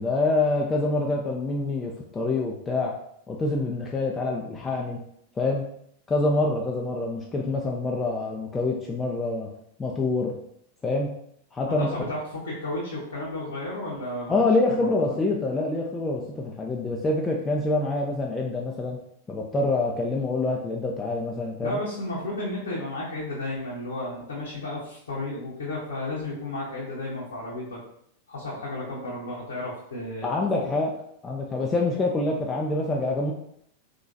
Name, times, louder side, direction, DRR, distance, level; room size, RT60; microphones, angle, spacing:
voice 1, 0.0-2.9 3.3-5.0 5.4-5.6 6.1-9.5 9.8-10.3 10.8-11.1 11.5-12.0 14.3-19.0 19.3-21.8 30.2-30.9 31.2-33.3, left 2 dB, 15° left, -1 dB, 0.5 m, -26 dB
voice 2, 11.6-14.4 14.7-15.2 21.6-27.8 28.3-30.3, left 1 dB, 70° left, -6 dB, 0.9 m, -33 dB
3.8 x 2.9 x 2.7 m, 0.70 s
figure-of-eight pair, 90°, 0 cm